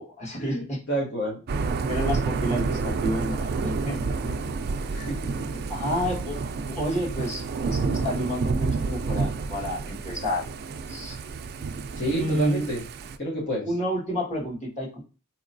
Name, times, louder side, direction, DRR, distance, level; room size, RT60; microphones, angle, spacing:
voice 1, 0.0-0.8 1.9-4.0 5.7-6.4 6.6-10.5 10.9-11.2 12.2-12.7 13.6-15.0, equal, 35° left, -4 dB, 1.5 m, -30 dB
voice 2, 0.9-1.4 3.9-4.5 4.9-5.6 11.9-12.8 13.2-13.7, right 1 dB, 55° left, -3 dB, 1.0 m, -30 dB
Thunder / Rain, 1.5-13.2, right 4 dB, 50° right, 0.3 m, -29 dB
4.2 x 2.9 x 2.6 m, 0.34 s
head